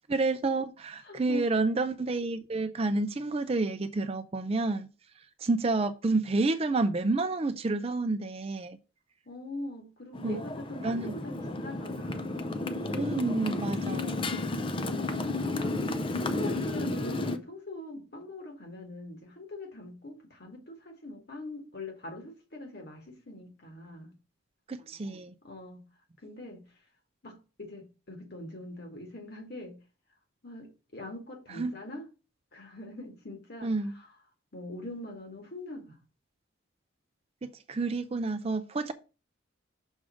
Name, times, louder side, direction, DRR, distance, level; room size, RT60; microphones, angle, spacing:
voice 1, 0.1-4.9 5.4-8.8 10.2-10.4 10.8-11.1 13.0-14.3 24.7-25.3 31.6-31.8 33.6-33.9 37.4-38.9, right 3 dB, 30° right, 0.4 m, -29 dB
voice 2, 1.0-1.5 9.2-12.6 13.8-13.9 14.8-15.8 16.2-24.1 25.4-25.8 26.2-26.6 27.2-29.8 30.4-32.1 32.5-34.2 34.5-36.0, left 2 dB, 50° left, 1.8 m, -43 dB
Motorcycle, 10.1-17.4, left 2 dB, 25° left, 0.5 m, -32 dB
6.3 x 3.6 x 6.1 m
head